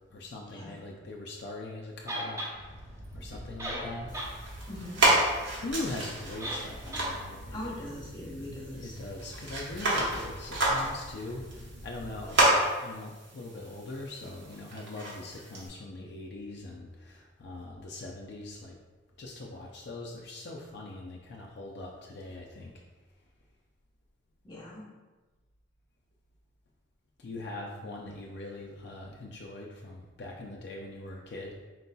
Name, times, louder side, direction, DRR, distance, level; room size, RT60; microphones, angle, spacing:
voice 1, 0.1-2.4 3.1-4.2 5.6-7.6 8.7-18.7 19.2-22.7 27.2-31.5, left 2 dB, 60° left, -1 dB, 0.4 m, -41 dB
sound 1, 2.1-2.5 3.3-3.4 3.6-4.3 4.7-4.8 6.4-6.7 6.9-7.1, equal, 15° right, 0.7 m, -35 dB
sound 2, 2.5-12.4, equal, 85° right, 0.7 m, -46 dB
sound 3, 4.1-15.7, right 1 dB, 70° right, 1.1 m, -31 dB
voice 2, 4.7-5.0 7.5-9.0 24.4-24.9, left 1 dB, 25° left, -4 dB, 1.0 m, -41 dB
4.5 x 3.9 x 2.3 m, 1.3 s
head